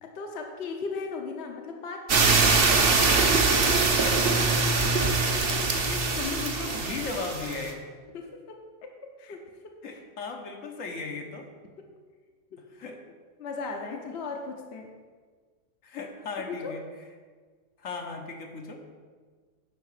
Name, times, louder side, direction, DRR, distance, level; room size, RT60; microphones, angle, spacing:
voice 1, 0.0-2.2 3.0-3.4 8.1-8.9 9.2-10.0 12.5-12.6 13.4-14.9 16.3-16.8, left 4 dB, 60° left, 3 dB, 1.0 m, -37 dB
sound 1, 2.1-7.7, right 4 dB, 50° right, 1.0 m, -23 dB
voice 2, 5.7-7.8 9.8-11.5 12.8-13.0 13.9-14.0 15.8-16.8 17.8-18.8, left 4 dB, 75° left, 2 dB, 1.4 m, -36 dB
10.5 x 3.7 x 6.6 m, 1.5 s
omnidirectional pair, 1.4 m